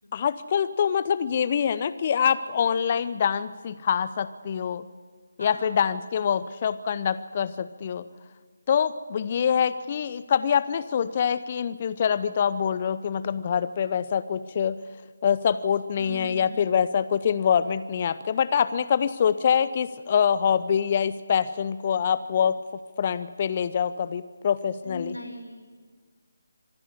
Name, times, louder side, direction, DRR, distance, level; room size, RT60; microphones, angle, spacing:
voice 1, 0.1-4.8 5.4-8.0 8.7-14.8 15.2-22.6 23.0-25.2, left 7 dB, 35° left, 15 dB, 0.7 m, -25 dB
voice 2, 5.4-5.7 10.9-11.0 16.0-16.7 24.8-25.7, left 1 dB, 90° left, 3 dB, 5.3 m, -39 dB
25.0 x 11.0 x 10.0 m, 1.5 s
figure-of-eight pair, 150°, 0 cm